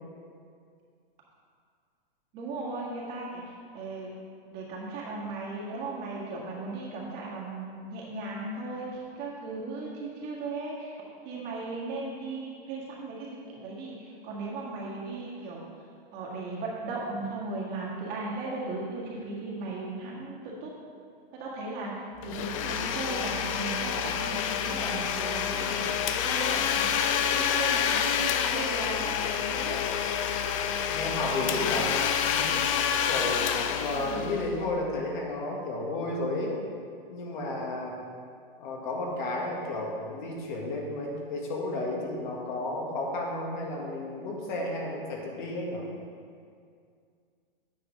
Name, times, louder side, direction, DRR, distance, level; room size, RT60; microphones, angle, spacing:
voice 1, 2.3-3.4 3.7-4.1 4.5-11.0 11.3-15.6 16.1-20.7 21.4-21.9 22.2-25.9 26.2-27.0 27.3-29.8 33.9-34.3, right 3 dB, 35° right, -4 dB, 1.8 m, -37 dB
Domestic sounds home sounds, 22.2-34.8, left 8 dB, 35° left, 0.4 m, -28 dB
voice 2, 30.9-31.9 32.2-32.8 33.1-36.6 37.1-38.0 38.6-45.9, left 2 dB, 55° left, -1 dB, 1.7 m, -32 dB
8.9 x 5.0 x 5.0 m, 2.2 s
hypercardioid pair, 145°, 29 cm